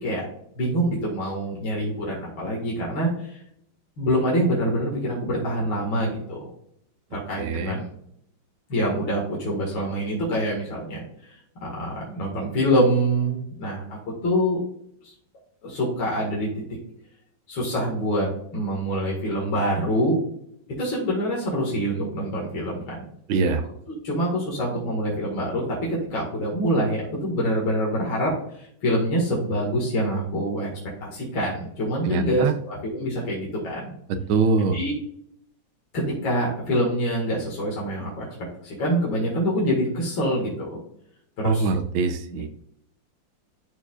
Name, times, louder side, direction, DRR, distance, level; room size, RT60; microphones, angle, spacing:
voice 1, 0.6-3.4 4.0-6.4 7.1-7.8 8.7-11.3 11.6-13.8 14.2-14.6 15.0-15.1 15.6-16.6 17.5-20.2 20.8-23.0 24.0-25.6 25.9-30.7 31.0-34.0 34.6-34.9 35.9-38.3 38.6-40.7 41.4-41.7 42.3-42.5, equal, 80° left, -4 dB, 2.7 m, -25 dB
voice 2, 7.4-7.8 23.3-23.6 32.1-32.5 34.3-34.8 41.4-42.5, right 4 dB, 80° right, 9 dB, 1.5 m, -23 dB
12.5 x 4.6 x 2.4 m, 0.71 s
omnidirectional pair, 2.2 m